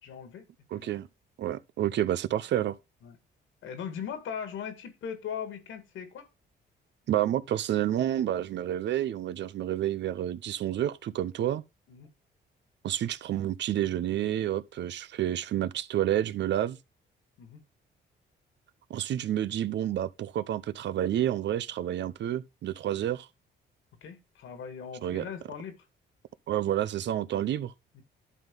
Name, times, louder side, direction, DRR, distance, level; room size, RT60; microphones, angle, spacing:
voice 1, 0.0-0.5 0.7-1.0 3.0-3.2 3.6-6.3 11.9-12.1 17.4-17.6 24.0-25.9 27.5-27.6 27.9-28.0, left 7 dB, 80° left, 2.0 m, -39 dB
voice 2, 0.7-1.1 1.4-2.8 7.1-11.6 12.8-16.8 18.9-23.3 25.0-25.2 26.5-27.7, right 12 dB, 65° right, 0.6 m, -29 dB
11.0 x 3.9 x 5.3 m
cardioid pair, 90°, 20 cm